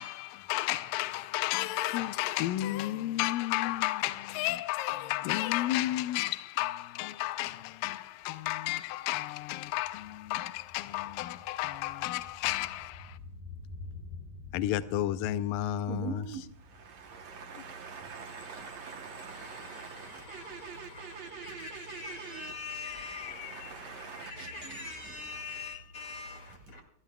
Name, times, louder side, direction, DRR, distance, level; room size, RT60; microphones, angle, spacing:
voice 1, 0.0-13.2 14.5-16.5 21.3-21.4 22.8-24.6 25.6-25.7, left 15 dB, 80° left, 2.0 m, -33 dB
sound 1, 7.3-7.4 7.7-18.0 18.3-18.4, left 3 dB, 65° left, 4.9 m, -50 dB
voice 2, 15.9-22.5 23.1-25.3, right 6 dB, 75° right, 1.5 m, -44 dB
voice 3, 19.3-26.8, left 4 dB, 40° left, 2.6 m, -44 dB
28.5 x 14.0 x 2.3 m
omnidirectional pair, 4.6 m